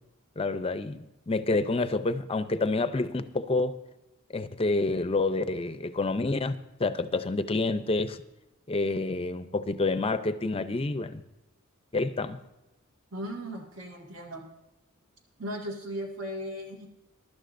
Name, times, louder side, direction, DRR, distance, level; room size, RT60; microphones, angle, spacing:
voice 1, 0.4-3.8 4.3-8.2 8.7-11.2 11.9-12.4, left 3 dB, 25° left, 11 dB, 0.6 m, -28 dB
voice 2, 13.1-14.5 15.4-16.9, equal, 65° right, -1 dB, 2.0 m, -37 dB
22.0 x 12.0 x 2.6 m, 0.95 s
head